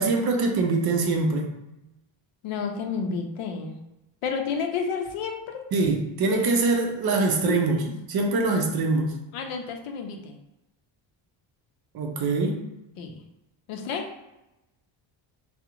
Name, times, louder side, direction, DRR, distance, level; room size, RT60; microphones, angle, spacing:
voice 1, 0.0-1.5 5.7-7.8 8.1-9.1 11.9-12.6, right 3 dB, 50° right, 3 dB, 0.5 m, -23 dB
voice 2, 2.4-3.8 4.2-5.6 7.5-8.0 9.3-10.4 13.0-13.2 13.7-14.1, left 5 dB, 75° left, 4 dB, 0.6 m, -31 dB
2.4 x 2.1 x 2.9 m, 0.92 s
cardioid pair, 125°, 50 cm